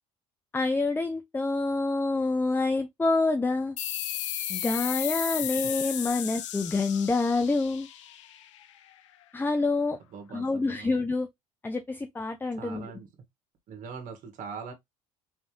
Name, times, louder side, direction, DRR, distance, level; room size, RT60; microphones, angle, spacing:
voice 1, 0.5-3.8 4.5-7.9 9.3-10.0 10.3-11.3 11.6-12.9, left 3 dB, 15° left, 0.6 m, -27 dB
sound 1, 3.8-8.9, left 12 dB, 90° left, 0.5 m, -34 dB
voice 2, 10.1-10.9 12.5-13.1 13.7-14.7, right 6 dB, 60° right, 1.8 m, -41 dB
4.2 x 3.4 x 3.0 m
hypercardioid pair, 70°, 15 cm